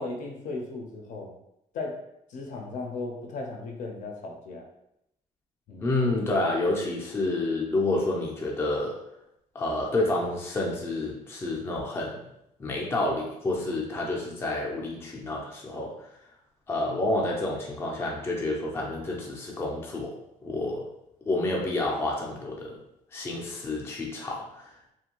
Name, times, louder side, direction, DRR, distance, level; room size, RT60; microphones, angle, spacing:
voice 1, 0.0-1.3 1.7-2.0 2.3-4.7 5.7-5.9, left 3 dB, 65° left, 1 dB, 0.5 m, -36 dB
voice 2, 5.8-9.0 9.5-12.3 12.6-16.1 16.7-20.2 20.4-20.9 21.3-22.8 23.1-24.9, left 2 dB, 15° left, -2 dB, 0.4 m, -29 dB
2.5 x 2.2 x 2.8 m, 0.80 s
cardioid pair, 165°, 14 cm